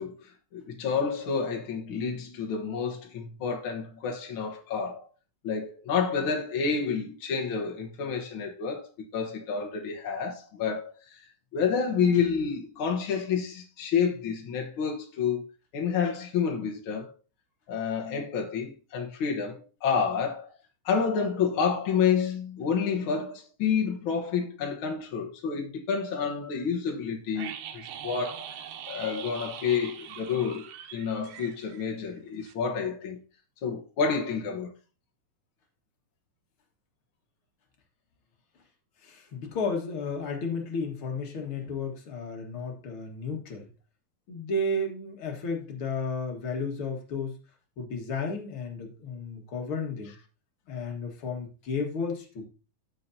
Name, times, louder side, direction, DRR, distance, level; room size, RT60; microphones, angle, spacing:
voice 1, 0.0-5.1 5.4-8.9 9.1-11.2 11.5-15.4 15.7-17.1 17.7-20.5 20.8-33.2 33.6-34.7, left 6 dB, 75° left, 1.2 m, -29 dB
sound 1, 27.4-32.2 32.4-32.5, right 9 dB, 80° right, 2.6 m, -42 dB
voice 2, 39.0-43.7 44.3-47.4 47.8-50.2 50.7-52.5, left 3 dB, 50° left, 1.9 m, -33 dB
14.0 x 5.7 x 2.7 m
omnidirectional pair, 4.0 m